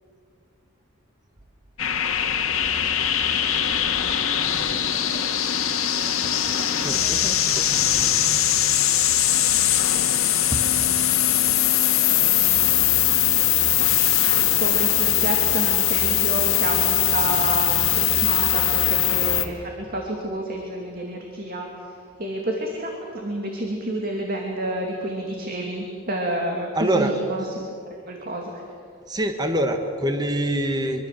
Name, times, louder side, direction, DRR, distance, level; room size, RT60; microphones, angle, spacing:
sound 1, 1.8-19.5, left 11 dB, 75° left, 1.9 m, -21 dB
voice 1, 4.9-5.3 5.9-8.3 10.0-10.9 26.7-27.1 29.1-31.1, right 1 dB, 20° right, 5 dB, 1.5 m, -27 dB
voice 2, 14.5-28.6, right 1 dB, 45° right, 1 dB, 2.6 m, -30 dB
24.0 x 24.0 x 7.6 m, 2.4 s
head